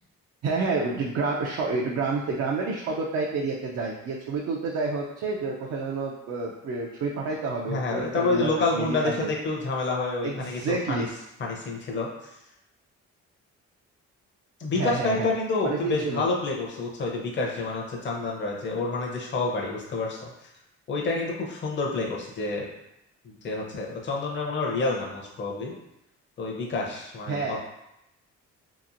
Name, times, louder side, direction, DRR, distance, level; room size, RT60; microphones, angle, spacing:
voice 1, 0.4-9.3 10.2-11.0 14.7-15.3 15.6-16.2 27.3-27.6, right 4 dB, 55° right, -1 dB, 0.4 m, -29 dB
voice 2, 7.7-11.1 11.4-12.1 14.6-20.5 20.9-22.6 23.2-25.7 26.4-27.6, left 3 dB, 40° left, -1 dB, 0.6 m, -28 dB
2.9 x 2.5 x 2.5 m, 0.87 s
cardioid pair, 90°, 30 cm